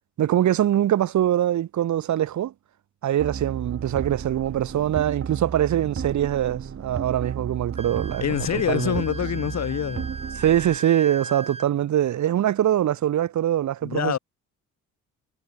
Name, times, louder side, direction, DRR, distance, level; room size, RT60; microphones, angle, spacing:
voice 1, 0.2-2.5 3.0-9.0 10.4-14.2, right 11 dB, 70° right, 3.4 m, -23 dB
sound 1, 3.2-10.8, right 7 dB, 45° right, 6.6 m, -34 dB
Wind instrument woodwind instrument, 7.7-11.7, right 3 dB, 20° right, 6.3 m, -38 dB
voice 2, 8.2-10.1 13.8-14.2, left 9 dB, 60° left, 3.9 m, -26 dB
cardioid pair, 90°, 30 cm